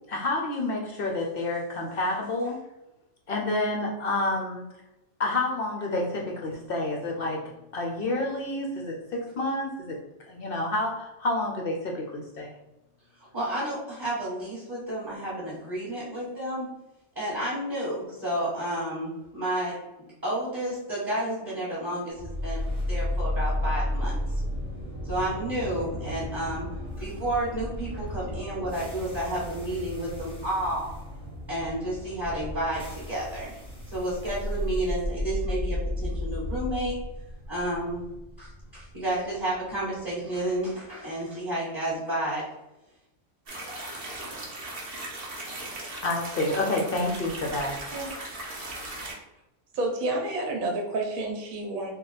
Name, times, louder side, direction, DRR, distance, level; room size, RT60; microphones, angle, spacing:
voice 1, 0.1-2.6 3.3-4.6 5.2-7.4 7.7-10.0 10.3-12.5 46.0-47.8, left 2 dB, 60° left, -1 dB, 0.6 m, -29 dB
voice 2, 13.2-16.7 17.1-19.7 20.2-24.1 25.0-26.7 27.0-30.9 31.5-36.9 37.5-38.0 38.4-42.5 47.9-48.1, right 1 dB, 15° right, -9 dB, 1.2 m, -31 dB
sound 1, 22.2-40.3, left 1 dB, 5° left, 0.6 m, -33 dB
sound 2, 43.5-49.1, right 2 dB, 45° right, 1.0 m, -38 dB
voice 3, 49.7-51.9, right 2 dB, 70° right, 1 dB, 1.2 m, -29 dB
3.6 x 2.2 x 3.9 m, 0.93 s
omnidirectional pair, 1.5 m